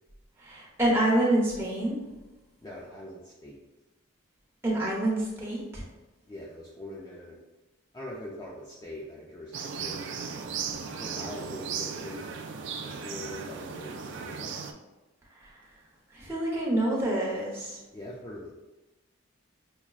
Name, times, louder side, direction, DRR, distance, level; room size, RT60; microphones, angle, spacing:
voice 1, 0.4-2.0 4.6-5.8 16.1-17.8, right 1 dB, 10° right, -6 dB, 0.9 m, -27 dB
voice 2, 2.6-3.6 6.3-7.4 7.9-10.0 11.0-12.3 12.8-14.6 17.9-18.5, left 1 dB, 20° left, -5 dB, 0.4 m, -42 dB
sound 1, 9.5-14.7, right 6 dB, 60° right, 0.3 m, -36 dB
5.8 x 2.1 x 2.4 m, 1.1 s
head